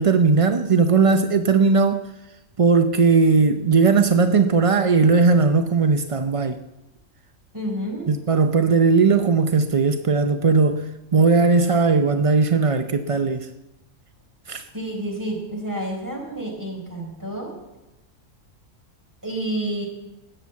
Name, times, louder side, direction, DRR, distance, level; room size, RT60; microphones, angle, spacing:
voice 1, 0.0-2.1 2.6-6.6 8.1-13.5 14.5-14.7, right 4 dB, 40° right, 0.4 m, -18 dB
voice 2, 7.5-8.1 14.7-17.5 19.2-19.9, right 1 dB, 15° right, 4.5 m, -29 dB
19.0 x 7.9 x 8.4 m
omnidirectional pair, 1.4 m